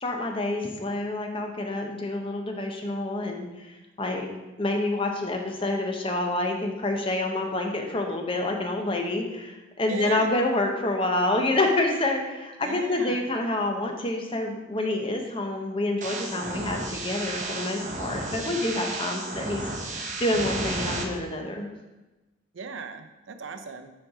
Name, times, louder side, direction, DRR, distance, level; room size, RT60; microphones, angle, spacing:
voice 1, 0.0-4.3 4.6-21.7, left 2 dB, 25° left, 3 dB, 0.8 m, -28 dB
voice 2, 9.9-10.3 12.6-13.3 22.5-23.9, right 5 dB, 80° right, 8 dB, 0.6 m, -37 dB
sound 1, 16.0-21.0, right 2 dB, 40° right, 0.8 m, -33 dB
6.3 x 4.5 x 4.8 m, 1.1 s
head